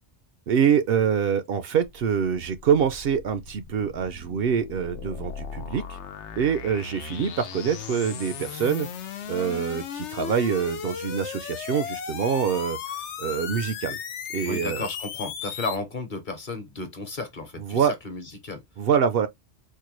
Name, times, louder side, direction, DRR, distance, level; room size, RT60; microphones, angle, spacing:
voice 1, 0.5-6.0 6.4-8.9 9.3-12.8 13.2-14.0 14.3-14.9 17.6-17.9 18.8-19.3, right 7 dB, 65° right, 0.7 m, -25 dB
sound 1, 1.8-15.8, left 8 dB, 85° left, 1.0 m, -36 dB
voice 2, 14.5-18.6, left 3 dB, 45° left, 1.0 m, -33 dB
4.5 x 2.1 x 3.0 m
omnidirectional pair, 1.2 m